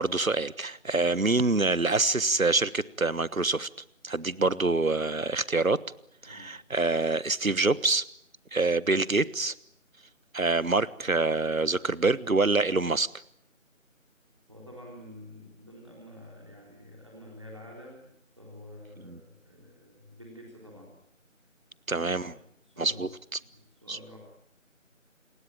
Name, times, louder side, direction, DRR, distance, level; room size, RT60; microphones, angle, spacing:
voice 1, 0.0-3.7 4.0-5.8 6.2-8.0 8.5-9.5 10.3-13.1 19.0-19.2 21.9-22.3 22.8-23.1 23.9-24.0, right 3 dB, 85° right, 19 dB, 1.4 m, -26 dB
voice 2, 14.5-18.1 18.4-21.0 21.9-23.0 23.4-24.2, left 1 dB, 20° right, -1 dB, 3.8 m, -48 dB
28.0 x 21.0 x 9.0 m, 0.72 s
figure-of-eight pair, 175°, 40 cm